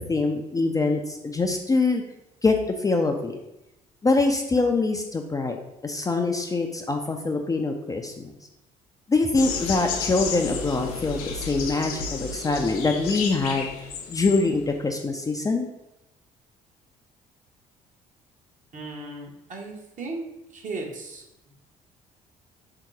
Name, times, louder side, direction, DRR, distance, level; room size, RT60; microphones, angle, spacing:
voice 1, 0.0-2.0 2.4-3.4 4.0-8.1 9.1-13.7 14.1-15.7, left 3 dB, 20° left, 3 dB, 0.5 m, -24 dB
sound 1, 9.3-14.7, left 5 dB, 75° left, 0.5 m, -32 dB
voice 2, 18.7-20.2 20.5-21.5, right 3 dB, 40° right, 0 dB, 1.0 m, -36 dB
3.7 x 2.8 x 4.7 m, 0.89 s
figure-of-eight pair, 50°, 20 cm